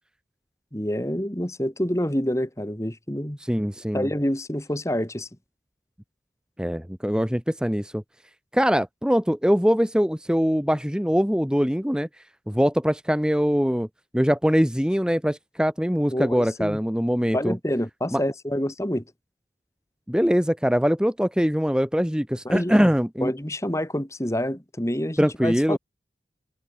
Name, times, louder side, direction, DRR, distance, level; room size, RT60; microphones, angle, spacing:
voice 1, 0.7-3.4 3.9-5.3 16.1-16.8 17.3-19.0 22.5-22.9 23.2-25.8, equal, 15° left, 2.0 m, -27 dB
voice 2, 3.4-4.1 6.6-8.0 8.5-12.1 12.5-13.9 14.1-17.6 18.1-18.2 20.1-23.3 25.2-25.8, equal, 5° right, 1.4 m, -22 dB
head